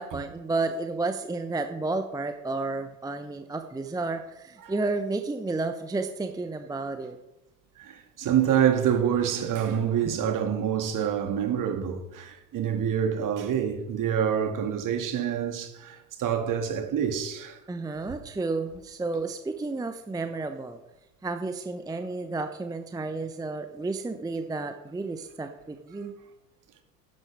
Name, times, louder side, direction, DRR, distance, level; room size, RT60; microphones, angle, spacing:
voice 1, 0.0-7.2 17.7-20.8 21.2-26.1, right 3 dB, 10° right, 0.7 m, -31 dB
voice 2, 7.8-17.6, right 9 dB, 40° right, 2.1 m, -27 dB
12.5 x 10.5 x 3.5 m
figure-of-eight pair, 70°, 48 cm